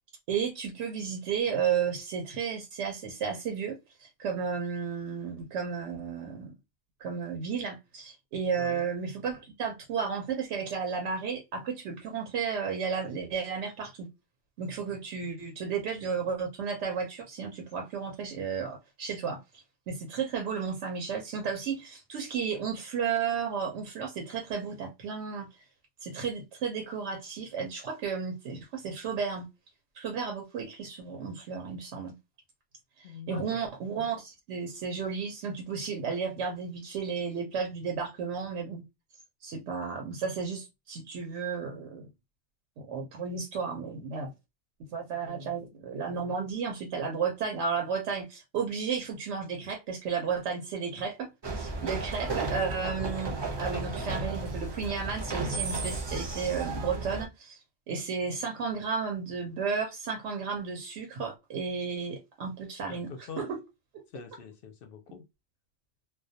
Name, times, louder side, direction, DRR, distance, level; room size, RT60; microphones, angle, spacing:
voice 1, 0.3-6.5 7.0-14.1 14.6-25.5 26.0-29.5 29.9-32.1 33.0-38.8 39.4-42.1 42.8-44.3 44.9-51.3 51.6-57.6 57.9-63.6, right 6 dB, 80° right, 0.9 m, -33 dB
voice 2, 33.0-33.7 45.2-45.7 62.9-63.5 64.1-65.2, left 5 dB, 60° left, 0.7 m, -45 dB
sound 1, 51.4-57.3, right 3 dB, 35° right, 0.5 m, -34 dB
2.2 x 2.2 x 2.6 m
omnidirectional pair, 1.2 m